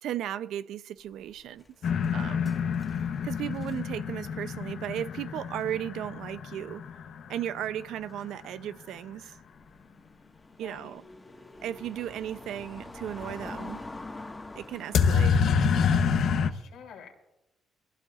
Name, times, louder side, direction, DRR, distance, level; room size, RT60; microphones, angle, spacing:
voice 1, 0.0-1.6 2.1-2.5 3.2-6.8 7.3-9.4 10.6-11.0 11.6-13.8 14.6-15.4 15.9-16.1, right 11 dB, 80° right, 0.5 m, -35 dB
sound 1, 1.1-6.7 6.9-7.1 7.8-15.3, left 2 dB, 20° left, 1.6 m, -46 dB
sound 2, 1.8-7.6 14.9-16.5, left 6 dB, 70° left, 0.9 m, -27 dB
voice 2, 2.1-2.8 10.5-10.9 16.5-17.1, left 6 dB, 85° left, 3.1 m, -50 dB
22.5 x 15.5 x 2.5 m
cardioid pair, 90°, 0 cm